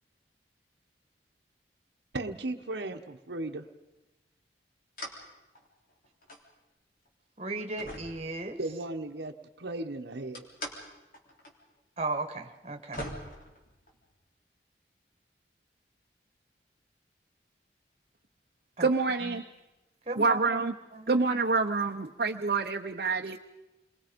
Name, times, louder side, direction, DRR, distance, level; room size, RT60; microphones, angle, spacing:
voice 1, 2.1-3.6 8.6-10.5, right 2 dB, 80° right, 5 dB, 1.1 m, -36 dB
sound 1, 5.0-5.2 5.5-6.5 7.0-7.1 7.8-8.9 10.3-10.8 11.1-11.5 11.8-11.9 12.5-12.6 12.9-14.1, equal, 50° left, 3.6 m, -42 dB
voice 2, 7.4-8.6 12.0-13.0 18.8-18.9 19.2-19.4 20.1-20.7 20.9-21.1, right 3 dB, 35° right, 6 dB, 1.5 m, -35 dB
voice 3, 18.8-19.4 20.2-20.7 21.1-23.4, right 4 dB, 55° right, 2 dB, 0.8 m, -27 dB
28.5 x 22.5 x 5.2 m, 1.0 s
head